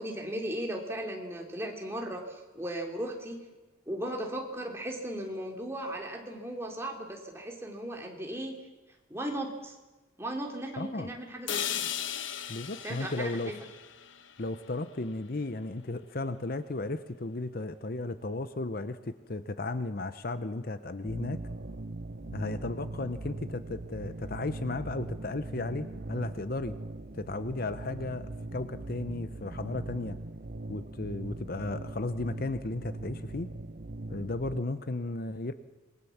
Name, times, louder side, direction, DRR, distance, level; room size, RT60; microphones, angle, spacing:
voice 1, 0.0-3.4 3.9-8.6 9.1-9.8 10.2-11.9 12.8-13.5, right 1 dB, 15° right, 1 dB, 3.2 m, -36 dB
voice 2, 10.7-11.1 12.5-13.5 14.4-21.4 22.3-26.8 27.1-30.2 30.7-33.5 34.1-35.5, left 2 dB, 50° left, 12 dB, 0.8 m, -35 dB
sound 1, 11.5-15.5, left 9 dB, 80° left, 1.2 m, -37 dB
sound 2, 21.0-34.6, right 2 dB, 50° right, 0.8 m, -41 dB
26.5 x 21.0 x 7.3 m, 1.2 s
head